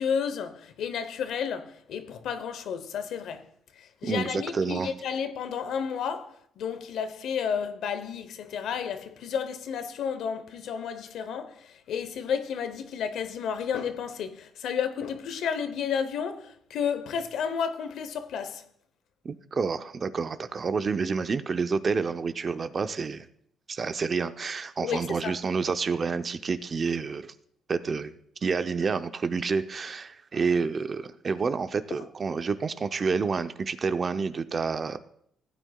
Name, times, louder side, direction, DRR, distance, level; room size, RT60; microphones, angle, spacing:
voice 1, 0.0-3.5 3.8-18.6 24.8-25.4, left 7 dB, 75° left, 0.8 m, -32 dB
voice 2, 4.0-4.9 19.2-23.3 23.7-27.3 27.7-28.1 28.4-35.0, right 5 dB, 40° right, 0.6 m, -29 dB
15.5 x 9.2 x 2.3 m
cardioid pair, 90°, 0 cm